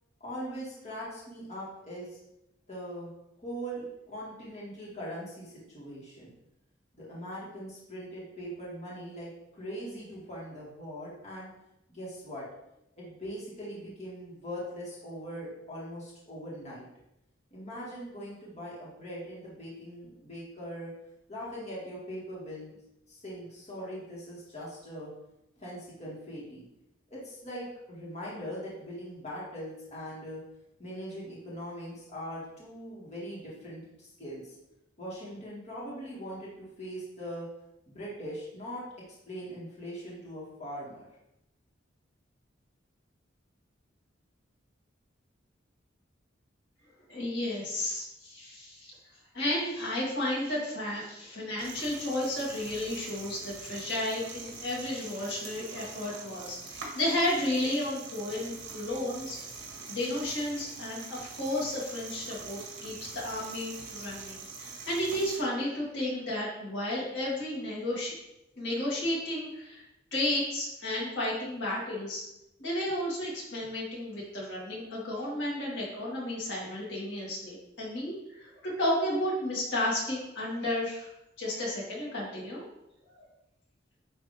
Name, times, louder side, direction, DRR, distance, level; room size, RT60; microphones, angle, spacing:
voice 1, 0.2-2.2 2.7-3.1 3.4-6.3 6.9-11.5 11.9-12.4 13.0-16.8 17.5-20.9 21.3-22.7 23.1-25.1 25.6-26.6 27.1-30.4 30.8-34.5 35.0-37.5 37.9-38.8 39.3-41.0, equal, 35° left, -7 dB, 2.0 m, -41 dB
voice 2, 47.1-48.9 49.3-59.4 59.9-68.2 68.6-69.8 70.1-72.2 72.6-81.1 81.4-82.7 83.2-83.3, left 1 dB, 65° left, -5 dB, 2.1 m, -32 dB
sound 1, 51.6-65.4, right 4 dB, 65° right, 1.3 m, -44 dB
9.7 x 3.3 x 3.3 m, 0.85 s
head